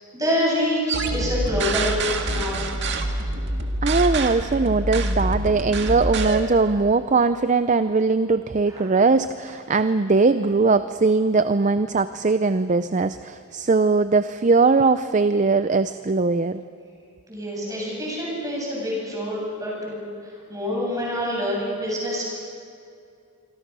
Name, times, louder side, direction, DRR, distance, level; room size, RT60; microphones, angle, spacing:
voice 1, 0.1-2.7 8.7-8.8 17.3-22.4, equal, 15° right, -4 dB, 8.0 m, -27 dB
sound 1, 0.9-6.4, right 2 dB, 55° right, 2.1 m, -26 dB
voice 2, 3.8-16.6, right 4 dB, 35° right, 11 dB, 0.5 m, -20 dB
26.0 x 25.5 x 6.2 m, 2.4 s
head